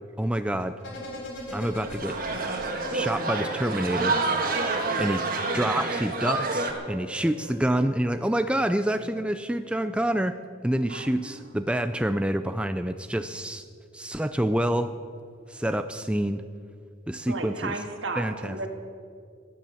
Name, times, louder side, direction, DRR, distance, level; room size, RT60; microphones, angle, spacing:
voice 1, 0.2-0.8 1.5-2.2 2.9-4.2 5.0-5.2 5.5-10.4 10.6-13.7 13.9-14.9 15.5-16.4 17.1-17.8 18.2-18.6, right 1 dB, 5° right, 9 dB, 0.4 m, -27 dB
sound 1, 0.8-5.2 6.0-7.9 8.2-8.3, equal, 70° left, 3.4 m, -41 dB
sound 2, 1.5-6.7, right 3 dB, 45° right, 1.7 m, -28 dB
voice 2, 4.7-5.4 10.9-11.5 17.3-18.7, right 3 dB, 75° right, 5 dB, 1.7 m, -35 dB
16.0 x 11.0 x 7.2 m, 2.3 s
head